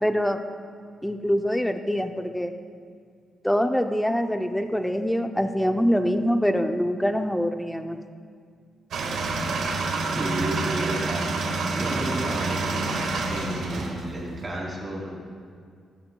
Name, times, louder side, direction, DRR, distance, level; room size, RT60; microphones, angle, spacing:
voice 1, 0.0-0.4 1.0-2.5 3.4-8.0, equal, 5° left, 6 dB, 0.5 m, -24 dB
sound 1, 8.9-14.6, right 3 dB, 75° right, 1.7 m, -28 dB
voice 2, 10.1-11.2 11.7-13.0 13.3-15.1, right 1 dB, 20° right, -4 dB, 3.1 m, -32 dB
20.0 x 13.0 x 2.3 m, 2.1 s
cardioid pair, 145°, 0 cm